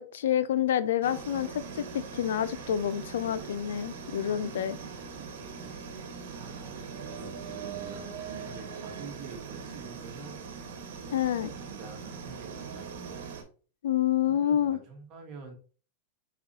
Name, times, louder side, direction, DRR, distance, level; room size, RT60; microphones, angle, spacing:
voice 1, 0.0-4.8 11.1-11.5 13.8-14.8, left 10 dB, 90° left, 0.4 m, -28 dB
sound 1, 1.0-13.4, right 6 dB, 75° right, 1.2 m, -41 dB
voice 2, 4.2-5.3 5.6-5.7 6.3-10.4 11.0-11.1 11.5-13.3 14.3-15.5, right 4 dB, 35° right, 1.4 m, -48 dB
4.7 x 4.1 x 2.7 m
supercardioid pair, 150°, 0 cm